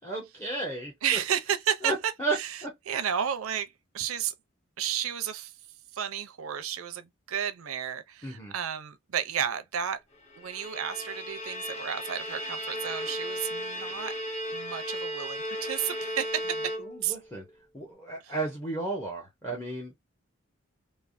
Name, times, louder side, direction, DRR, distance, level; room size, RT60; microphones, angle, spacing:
voice 1, 0.0-1.2 1.8-2.4 2.6-2.8 8.2-8.5 16.9-17.5 17.7-20.0, right 2 dB, 15° left, 0.7 m, -33 dB
voice 2, 1.0-4.3 4.8-5.5 5.9-10.0 10.4-14.1 14.5-16.7 17.0-17.2 18.2-18.3, right 9 dB, 90° right, 0.5 m, -32 dB
Bowed string instrument, 10.3-17.2, equal, 30° left, 1.0 m, -35 dB
3.2 x 2.0 x 2.4 m
head